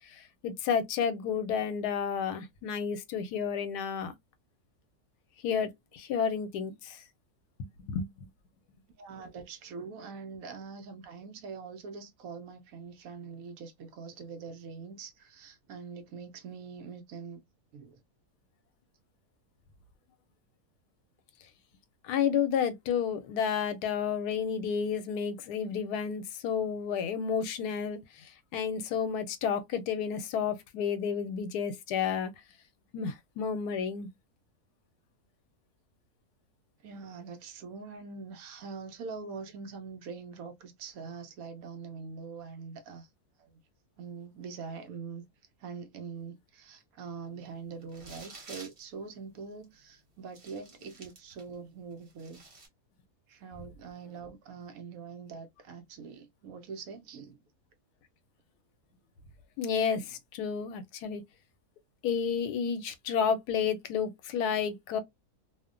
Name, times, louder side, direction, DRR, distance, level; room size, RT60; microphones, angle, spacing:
voice 1, 0.1-4.1 5.4-7.0 7.6-8.3 22.0-32.3 32.9-34.1 59.6-61.2 62.0-65.0, left 7 dB, 90° left, 1.1 m, -31 dB
voice 2, 9.0-17.4 17.7-18.0 36.8-43.1 43.4-43.6 44.0-45.2 45.6-52.4 53.3-57.4 60.0-60.1, right 5 dB, 70° right, 1.0 m, -43 dB
sound 1, 47.8-48.8 49.6-49.7 50.3-51.5 51.9-52.7, right 3 dB, 50° right, 1.2 m, -50 dB
2.7 x 2.1 x 2.4 m
omnidirectional pair, 1.6 m